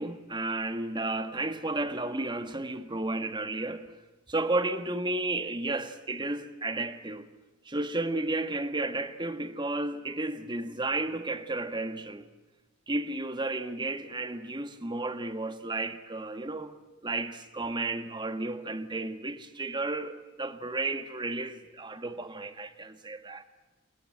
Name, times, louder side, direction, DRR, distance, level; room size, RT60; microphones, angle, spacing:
voice 1, 0.0-3.9 4.3-7.3 7.6-12.3 12.9-16.7 17.0-23.4, right 2 dB, 20° right, 1.6 m, -33 dB
30.0 x 20.5 x 7.8 m
head